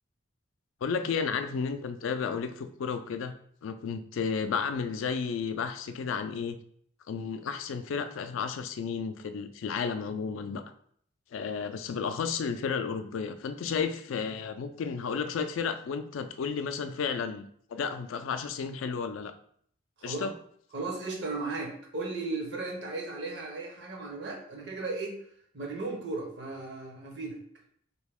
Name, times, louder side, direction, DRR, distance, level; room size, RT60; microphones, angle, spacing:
voice 1, 0.8-3.3 3.6-6.6 7.1-10.6 11.3-17.4 17.7-19.3 20.0-20.3, left 6 dB, 85° left, 9 dB, 0.3 m, -32 dB
voice 2, 20.7-25.2 25.5-27.4, right 3 dB, 60° right, 0 dB, 0.9 m, -36 dB
3.1 x 2.8 x 3.4 m, 0.64 s
head